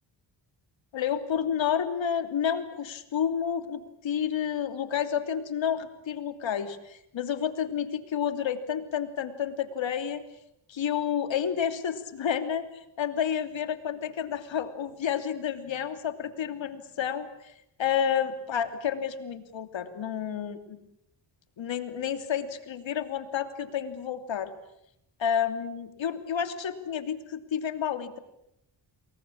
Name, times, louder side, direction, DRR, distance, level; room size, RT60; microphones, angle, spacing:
voice 1, 0.9-10.3 10.7-17.5 17.8-20.8 21.6-24.5 25.2-28.2, left 8 dB, 75° left, 9 dB, 3.0 m, -30 dB
28.5 x 22.0 x 8.7 m, 0.81 s
cardioid pair, 75°, 46 cm